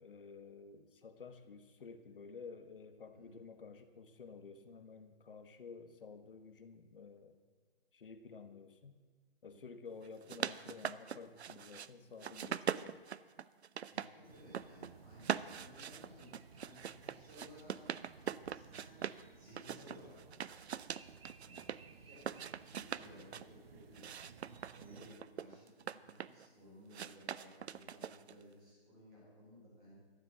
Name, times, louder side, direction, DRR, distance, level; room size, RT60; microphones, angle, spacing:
voice 1, 0.0-7.4 7.9-8.9 9.4-13.0, left 5 dB, 55° left, 8 dB, 1.4 m, -52 dB
sound 1, 10.0-11.9 12.2-14.1 14.4-14.9 15.2-19.2 19.6-21.8 22.2-23.5 23.9-26.5 26.9-28.4, right 8 dB, 85° right, 0.6 m, -42 dB
voice 2, 13.9-17.8 18.1-18.9 19.3-20.7 21.4-21.6 22.0-22.4 22.7-24.3 24.7-29.9, equal, 15° right, -6 dB, 4.4 m, -58 dB
sound 2, 14.2-25.2, right 5 dB, 65° right, 1.0 m, -59 dB
13.5 x 7.6 x 8.1 m, 1.4 s
hypercardioid pair, 175°, 32 cm